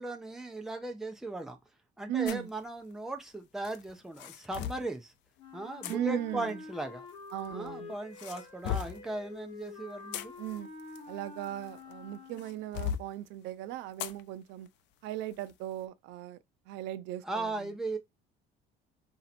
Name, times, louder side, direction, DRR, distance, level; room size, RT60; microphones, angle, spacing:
voice 1, 0.0-1.6 2.0-5.1 5.5-7.1 7.5-10.3 17.2-18.0, right 2 dB, ahead, 0.5 m, -37 dB
voice 2, 2.1-2.5 5.9-6.5 7.3-7.9 10.4-10.7 11.1-14.7 15.0-16.4 16.7-17.7, right 12 dB, 70° right, 0.4 m, -37 dB
sound 1, 2.3-2.5 3.6-4.9 5.8-6.0 7.1-7.7 8.2-9.1 9.8-11.9 12.4-13.1 14.0-14.2 14.7-14.8 15.3-15.5, left 10 dB, 70° left, 0.5 m, -37 dB
Wind instrument woodwind instrument, 5.4-12.7, left 4 dB, 35° left, 1.5 m, -48 dB
4.2 x 2.8 x 4.1 m
cardioid pair, 170°, 19 cm